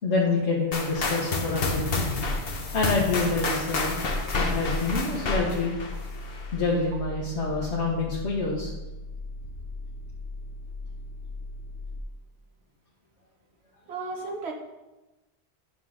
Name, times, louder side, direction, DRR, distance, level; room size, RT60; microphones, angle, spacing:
voice 1, 0.0-2.0 2.7-4.0 4.3-5.7 6.5-8.7, left 3 dB, 85° left, -4 dB, 1.5 m, -27 dB
sound 1, 0.7-6.6, left 3 dB, 60° left, 1.1 m, -29 dB
sound 2, 1.6-12.0, left 2 dB, 40° right, 1.2 m, -39 dB
voice 2, 13.9-14.5, right 3 dB, 70° right, 2 dB, 1.4 m, -35 dB
9.5 x 3.7 x 6.3 m, 1.1 s
omnidirectional pair, 1.1 m